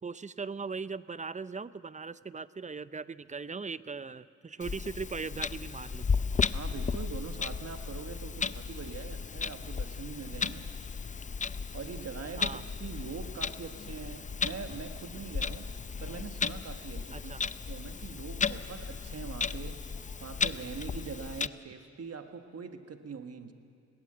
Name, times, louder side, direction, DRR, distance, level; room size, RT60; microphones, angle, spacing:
voice 1, 0.0-6.1 12.4-12.6 17.1-17.4, right 4 dB, 25° right, 16 dB, 0.6 m, -39 dB
Clock, 4.6-21.5, left 5 dB, 25° left, 0.5 m, -35 dB
voice 2, 6.5-10.7 11.7-15.7 16.0-19.8 20.2-23.5, right 5 dB, 55° right, 7 dB, 1.6 m, -43 dB
21.5 x 18.0 x 7.9 m, 2.4 s
cardioid pair, 65°, 30 cm